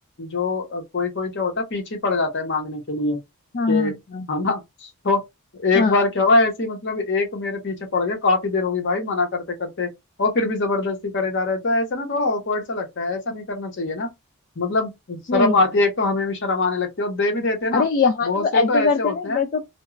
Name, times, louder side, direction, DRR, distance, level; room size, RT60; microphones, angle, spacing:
voice 1, 0.2-3.2 3.7-4.0 4.3-5.2 5.5-9.9 10.2-14.1 14.6-17.9 18.2-19.5, left 3 dB, 55° left, 0.9 m, -23 dB
voice 2, 3.5-4.3 5.8-6.0 15.3-15.6 17.7-19.7, left 4 dB, 40° left, 0.3 m, -21 dB
2.3 x 2.2 x 3.0 m
head